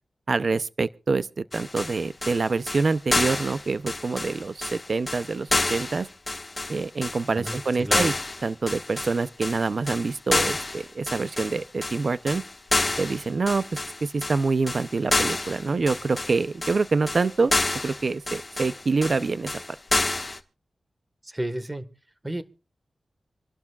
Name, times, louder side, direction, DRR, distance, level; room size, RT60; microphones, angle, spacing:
voice 1, 0.3-6.1 6.7-8.1 8.4-12.4 13.0-13.6 14.0-17.5 17.8-19.5, right 4 dB, 60° right, 0.6 m, -26 dB
sound 1, 1.5-20.4, left 2 dB, 30° left, 1.4 m, -29 dB
voice 2, 7.3-8.1 21.2-21.9 22.2-22.4, right 1 dB, 20° right, 1.4 m, -32 dB
26.5 x 12.0 x 2.4 m
cardioid pair, 65°, 0 cm